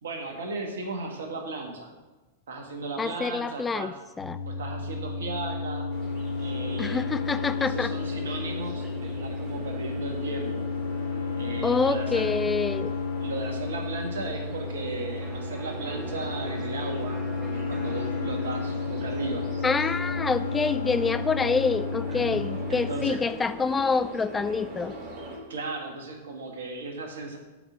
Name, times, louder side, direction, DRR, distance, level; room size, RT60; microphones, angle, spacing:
voice 1, 0.0-1.9 2.5-3.9 4.5-5.9 6.4-7.3 7.6-10.6 11.4-12.3 13.2-17.2 17.5-19.5 22.1-22.4 22.7-23.2 25.5-27.4, right 3 dB, 70° right, 2 dB, 1.8 m, -36 dB
voice 2, 3.0-4.4 6.8-7.9 11.6-12.9 19.6-24.9, left 4 dB, 15° left, 13 dB, 0.3 m, -27 dB
sound 1, 4.2-23.1, left 4 dB, 80° left, 0.7 m, -32 dB
sound 2, 5.9-25.4, right 1 dB, 40° right, 3.2 m, -41 dB
Electric guitar, 15.2-22.9, right 3 dB, 5° right, 2.0 m, -45 dB
7.9 x 5.0 x 7.4 m, 1.2 s
figure-of-eight pair, 95°, 0 cm